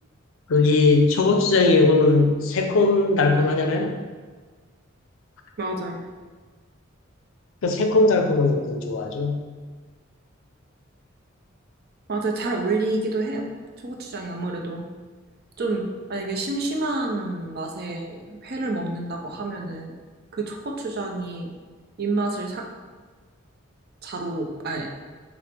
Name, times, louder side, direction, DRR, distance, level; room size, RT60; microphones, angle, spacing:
voice 1, 0.5-4.0 7.6-9.4, left 3 dB, 75° left, 4 dB, 0.5 m, -19 dB
voice 2, 5.6-6.0 12.1-13.5 13.8-14.8 15.6-19.9 20.3-21.5 22.0-22.6 24.0-24.9, right 2 dB, 50° right, 2 dB, 0.5 m, -28 dB
5.7 x 2.0 x 3.4 m, 1.4 s
head